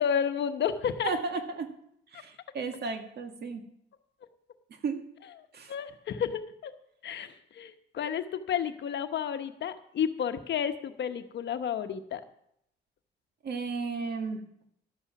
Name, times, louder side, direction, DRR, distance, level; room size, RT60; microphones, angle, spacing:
voice 1, 0.0-1.1 2.1-2.2 5.7-6.7 7.0-12.2, left 8 dB, 65° left, 8 dB, 1.0 m, -31 dB
voice 2, 1.0-1.7 2.1-3.6 4.8-5.0 5.5-5.7 13.4-14.4, right 4 dB, 55° right, 5 dB, 1.8 m, -33 dB
12.5 x 8.9 x 5.8 m, 0.73 s
cardioid pair, 90°, 20 cm